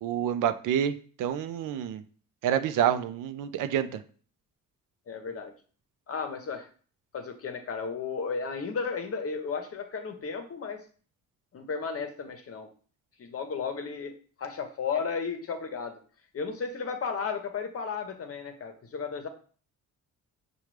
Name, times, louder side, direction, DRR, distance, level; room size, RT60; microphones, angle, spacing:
voice 1, 0.0-0.9 1.2-2.0 2.4-4.0, right 9 dB, 75° right, 11 dB, 0.5 m, -27 dB
voice 2, 5.1-5.5 6.1-6.7 7.1-10.8 11.5-12.7 13.2-14.1 14.4-16.0 16.3-19.3, left 5 dB, 45° left, 6 dB, 0.8 m, -34 dB
5.7 x 2.3 x 3.1 m, 0.42 s
cardioid pair, 85°, 32 cm